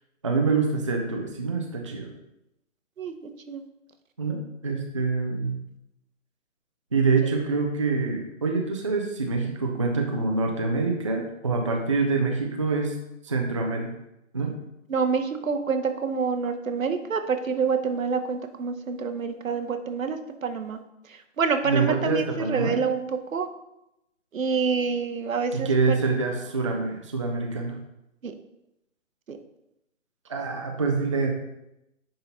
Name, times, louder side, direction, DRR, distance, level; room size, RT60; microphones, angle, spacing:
voice 1, 0.2-2.1 4.2-5.5 6.9-13.0 13.2-13.9 14.3-14.5 21.7-22.8 25.5-27.8 30.3-31.3, right 4 dB, 25° right, 1 dB, 0.4 m, -26 dB
voice 2, 3.0-3.6 4.7-4.8 11.9-12.0 14.9-20.8 21.1-23.0 23.3-23.5 24.3-26.0 28.2-28.3 29.3-29.4, right 5 dB, 80° right, 7 dB, 0.9 m, -27 dB
9.4 x 3.8 x 2.9 m, 0.87 s
figure-of-eight pair, 145°, 39 cm